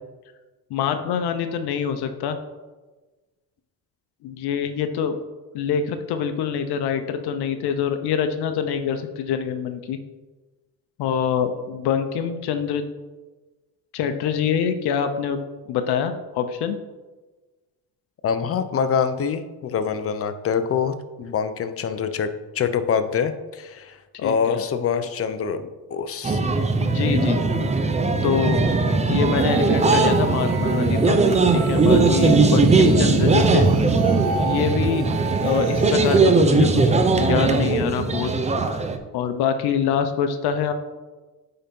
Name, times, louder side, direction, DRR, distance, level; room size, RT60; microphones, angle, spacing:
voice 1, 0.7-2.4 4.2-5.2 5.5-10.0 11.0-12.8 13.9-15.4 15.7-16.8 24.2-24.6 26.8-27.4 28.2-28.6 29.1-31.2 31.5-33.7 34.4-35.1 35.4-38.4 39.1-40.7, left 7 dB, 75° left, 8 dB, 0.8 m, -25 dB
voice 2, 18.2-26.4, left 6 dB, 35° left, 10 dB, 0.6 m, -25 dB
sound 1, 26.2-39.0, right 3 dB, 15° right, 0.6 m, -19 dB
sound 2, 29.4-36.2, right 6 dB, 75° right, 0.9 m, -32 dB
8.7 x 3.9 x 5.3 m, 1.2 s
cardioid pair, 115°, 39 cm